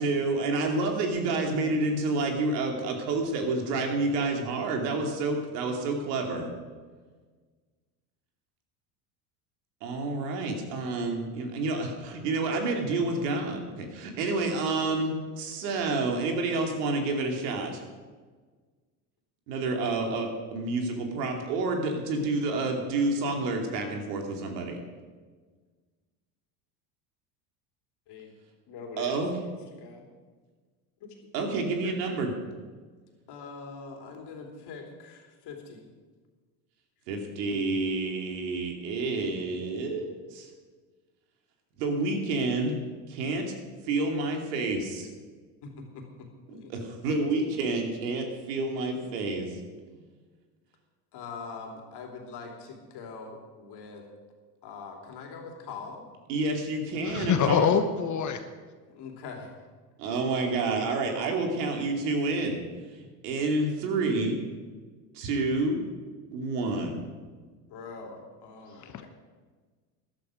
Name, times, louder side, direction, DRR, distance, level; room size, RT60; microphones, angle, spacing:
voice 1, 0.0-6.5 9.8-17.8 19.5-24.8 29.0-29.3 31.3-32.4 37.1-40.5 41.8-42.8 43.1-43.5 43.9-45.1 46.7-49.5 56.3-57.7 60.0-62.6 63.2-64.4 65.1-65.8 66.3-67.0, right 3 dB, 75° right, 2 dB, 2.8 m, -29 dB
voice 2, 28.7-30.0 31.0-31.1 31.8-31.9 33.3-35.9 45.6-46.7 48.0-48.2 49.9-50.0 51.1-54.1 54.6-56.0 58.9-59.5 67.7-69.1, left 4 dB, 55° left, 2 dB, 3.2 m, -43 dB
voice 3, 57.0-58.4 68.9-69.1, left 7 dB, 35° left, 8 dB, 1.1 m, -25 dB
13.5 x 11.5 x 5.1 m, 1.4 s
hypercardioid pair, 95°, 49 cm